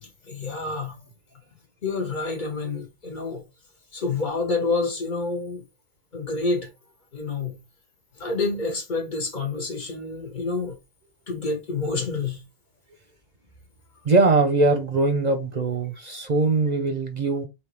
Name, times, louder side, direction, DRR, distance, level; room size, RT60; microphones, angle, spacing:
voice 1, 0.0-0.9 1.8-3.4 3.9-5.6 6.1-6.7 7.1-7.6 8.2-10.8 11.3-12.4, left 3 dB, 50° left, 1.3 m, -28 dB
voice 2, 14.0-17.5, right 3 dB, 50° right, 0.6 m, -21 dB
3.4 x 2.9 x 4.4 m
omnidirectional pair, 1.1 m